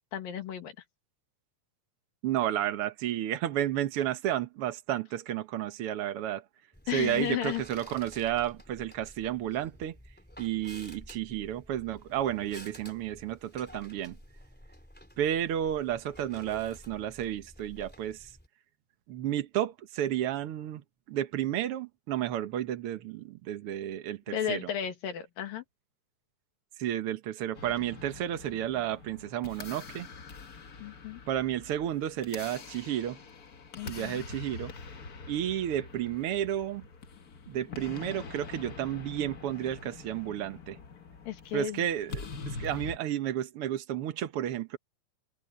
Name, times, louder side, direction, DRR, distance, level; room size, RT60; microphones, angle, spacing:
voice 1, 0.1-0.8 6.9-7.6 24.3-25.6 30.8-31.2 33.7-34.3 41.3-41.8, left 10 dB, 80° left, 3.8 m, -34 dB
voice 2, 2.2-6.4 6.9-9.9 10.4-14.2 15.2-18.3 19.1-20.8 21.1-24.7 26.8-30.1 31.3-33.2 33.8-34.7 35.3-36.8 37.5-40.8 41.5-44.8, right 11 dB, 70° right, 1.3 m, -32 dB
sound 1, 6.7-18.5, equal, 5° left, 3.3 m, -51 dB
sound 2, 27.6-43.0, left 4 dB, 65° left, 0.8 m, -44 dB
omnidirectional pair, 4.0 m